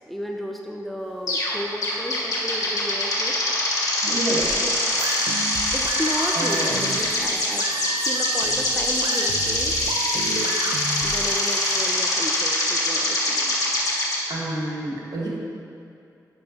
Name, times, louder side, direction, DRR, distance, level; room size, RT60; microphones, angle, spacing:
voice 1, 0.1-3.3 4.1-4.7 5.7-10.0 10.3-10.5 11.0-13.6, equal, ahead, 0 dB, 0.5 m, -33 dB
sound 1, 1.3-1.5 1.8-14.2, left 1 dB, 60° left, 1.8 m, -24 dB
voice 2, 4.0-4.6 6.3-6.7 14.3-15.3, right 2 dB, 65° right, -4 dB, 1.6 m, -28 dB
sound 2, 4.4-11.3, right 3 dB, 85° right, 0.5 m, -32 dB
11.0 x 5.4 x 2.9 m, 2.6 s
wide cardioid pair, 100°, 7 cm